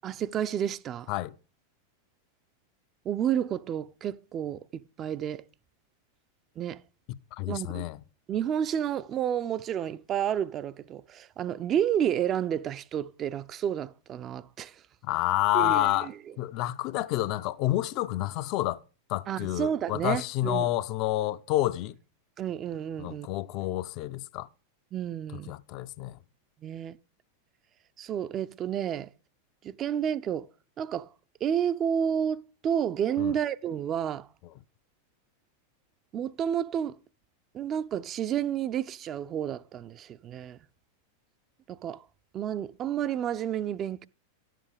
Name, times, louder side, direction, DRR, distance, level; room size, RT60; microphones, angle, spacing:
voice 1, 0.0-1.1 3.1-5.4 6.6-6.8 7.5-7.9 8.3-14.8 15.5-16.1 19.3-20.7 22.4-23.3 24.9-25.5 26.6-27.0 28.0-29.1 29.6-30.5 30.8-31.1 31.4-34.3 36.1-37.0 37.5-40.6 41.7-42.0 42.3-44.1, right 9 dB, 30° right, 0.4 m, -30 dB
voice 2, 7.1-8.0 15.0-16.1 16.4-18.8 19.1-21.9 23.0-24.5 25.5-26.2 33.2-33.3, left 15 dB, 40° left, 0.4 m, -29 dB
11.5 x 7.6 x 4.9 m
figure-of-eight pair, 90°, 0 cm